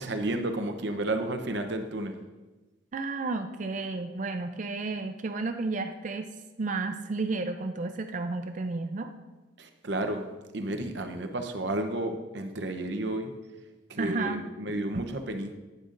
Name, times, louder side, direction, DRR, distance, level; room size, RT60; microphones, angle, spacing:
voice 1, 0.0-2.2 9.6-10.3 10.5-13.3 13.9-15.6, right 1 dB, 60° right, 6 dB, 0.8 m, -32 dB
voice 2, 2.9-9.1 14.0-14.4 14.9-15.0, right 3 dB, 40° right, 7 dB, 0.4 m, -32 dB
10.5 x 9.8 x 2.5 m, 1.2 s
head